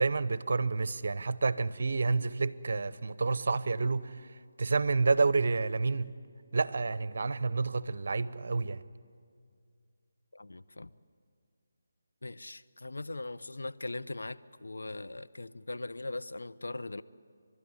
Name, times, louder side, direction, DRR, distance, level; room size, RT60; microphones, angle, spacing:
voice 1, 0.0-4.1 4.6-6.1 6.5-8.8, right 4 dB, 60° right, 0.8 m, -29 dB
voice 2, 10.3-10.9 12.2-17.0, left 2 dB, 80° left, 0.7 m, -40 dB
30.0 x 12.5 x 9.7 m
figure-of-eight pair, 155°, 0 cm